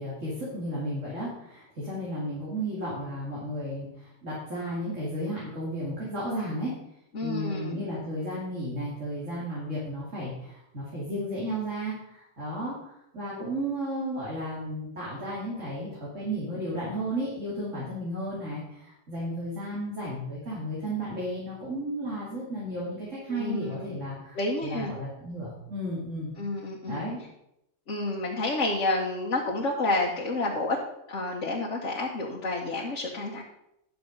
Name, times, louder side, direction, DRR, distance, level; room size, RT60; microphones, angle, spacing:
voice 1, 0.0-6.7 7.2-26.3 26.8-27.2, equal, 80° right, -7 dB, 3.2 m, -33 dB
voice 2, 7.1-7.9 23.3-24.0 24.3-24.9 26.4-27.0 27.9-30.8 31.1-33.4, left 2 dB, 75° left, -2 dB, 1.6 m, -29 dB
10.5 x 6.8 x 5.3 m, 0.82 s
omnidirectional pair, 1.3 m